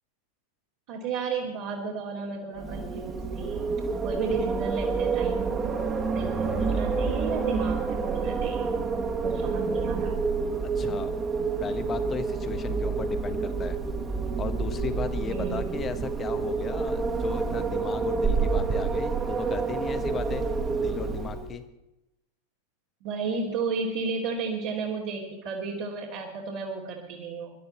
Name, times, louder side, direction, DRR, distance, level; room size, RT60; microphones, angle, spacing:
voice 1, 0.9-3.6 4.0-8.7 9.2-10.3 15.3-15.8 23.0-27.5, right 4 dB, 50° right, -5 dB, 2.9 m, -33 dB
Wind, 2.5-21.6, right 4 dB, 20° right, 2.0 m, -28 dB
voice 2, 10.6-11.1 11.6-13.8 14.4-20.5 20.8-21.6, left 7 dB, 25° left, 10 dB, 1.3 m, -36 dB
24.5 x 12.0 x 4.4 m, 0.94 s
figure-of-eight pair, 90°, 0 cm